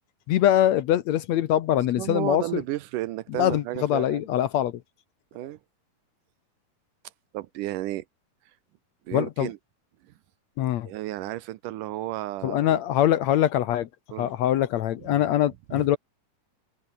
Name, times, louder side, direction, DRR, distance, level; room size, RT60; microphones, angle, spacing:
voice 1, 0.3-2.6 3.4-4.8 9.1-9.5 10.6-10.9 12.4-13.9 14.2-16.0, left 12 dB, 70° left, 1.8 m, -23 dB
voice 2, 2.0-4.3 5.3-5.6 7.3-8.1 9.1-9.6 10.0-10.1 10.8-12.8 14.1-14.3 15.0-15.2 15.7-15.9, right 16 dB, 75° right, 2.3 m, -33 dB
omnidirectional pair, 4.1 m